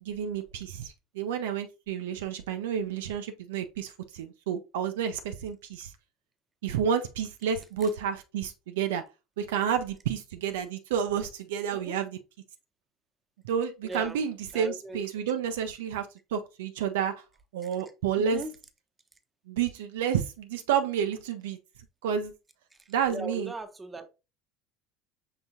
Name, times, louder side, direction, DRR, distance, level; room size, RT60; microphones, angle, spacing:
voice 1, 0.0-5.9 6.6-9.0 9.4-12.2 13.4-17.2 17.5-18.4 19.5-21.6 22.0-22.3 22.9-23.5, right 8 dB, 75° right, 0.4 m, -30 dB
voice 2, 11.7-12.0 13.8-14.2 14.5-15.0 18.1-18.5 22.8-24.1, right 2 dB, 15° right, 0.8 m, -39 dB
5.6 x 3.4 x 2.7 m
hypercardioid pair, 75°, 0 cm